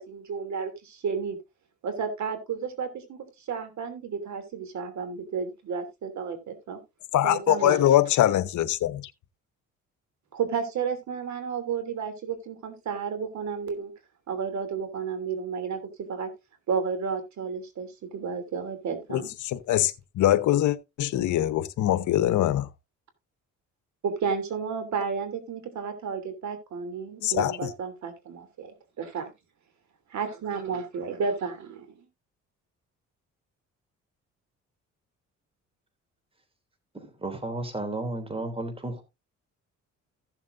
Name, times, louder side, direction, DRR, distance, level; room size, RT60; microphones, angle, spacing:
voice 1, 0.0-1.4 1.8-6.8 7.2-7.8 10.3-13.9 14.3-16.3 16.7-19.3 24.0-29.3 30.1-31.9, right 6 dB, 65° right, 3.0 m, -32 dB
voice 2, 7.1-9.0 19.1-22.7 27.2-27.7, left 13 dB, 75° left, 1.0 m, -23 dB
voice 3, 36.9-39.0, right 2 dB, 20° right, 3.0 m, -33 dB
15.5 x 7.3 x 2.6 m
cardioid pair, 90°, 30 cm